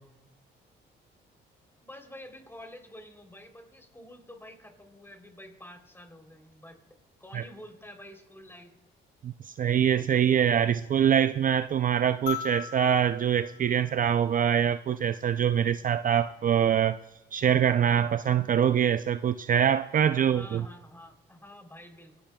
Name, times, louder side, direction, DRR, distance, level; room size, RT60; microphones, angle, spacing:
voice 1, 1.8-6.8 7.2-8.7 20.1-22.2, left 1 dB, 10° left, 4 dB, 3.2 m, -48 dB
voice 2, 9.2-17.0 17.3-20.6, right 9 dB, 45° right, 11 dB, 0.4 m, -24 dB
sound 1, 12.3-14.8 16.4-16.5, left 9 dB, 80° left, 5.1 m, -40 dB
26.5 x 18.0 x 2.3 m, 1.1 s
cardioid pair, 90°, 20 cm